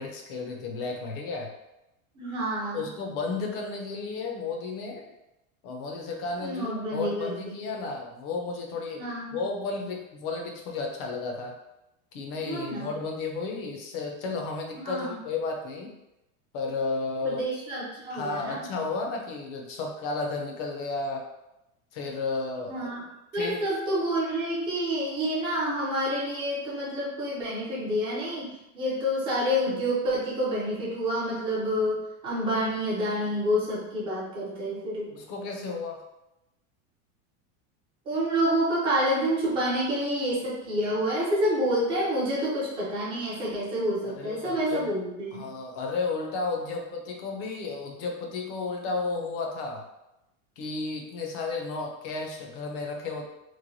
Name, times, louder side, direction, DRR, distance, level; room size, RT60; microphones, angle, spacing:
voice 1, 0.0-1.5 2.7-5.1 5.6-11.6 12.1-15.9 16.5-17.5 18.1-21.3 21.9-22.9 23.3-23.6 35.1-36.0 44.0-44.9 45.3-49.8 50.6-53.3, left 3 dB, 45° left, 1 dB, 0.5 m, -33 dB
voice 2, 2.2-2.8 6.4-7.7 9.0-9.4 12.4-12.9 14.8-15.1 17.2-18.7 22.7-23.0 23.3-35.1 38.1-45.5, equal, 15° right, -6 dB, 0.3 m, -28 dB
3.1 x 2.1 x 2.6 m, 0.91 s
supercardioid pair, 160°, 42 cm